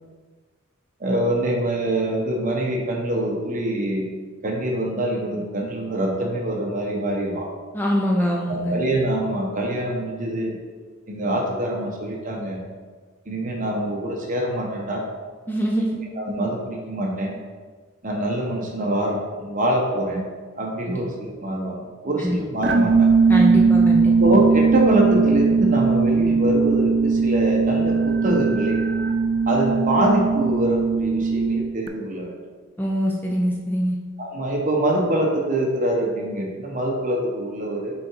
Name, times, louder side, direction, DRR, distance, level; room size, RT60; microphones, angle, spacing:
voice 1, 1.0-4.1 4.4-7.5 8.5-10.6 11.1-12.6 13.3-15.0 16.1-17.4 18.0-20.2 20.6-23.1 24.2-28.8 29.5-32.3 34.2-37.9, right 1 dB, 40° right, -1 dB, 1.1 m, -24 dB
voice 2, 7.7-8.7 15.5-16.0 20.9-21.0 22.2-22.4 23.3-24.1 32.8-34.0, equal, 10° left, -2 dB, 0.5 m, -23 dB
sound 1, 22.6-31.9, right 4 dB, 55° right, 0.5 m, -19 dB
6.1 x 3.7 x 4.6 m, 1.5 s
head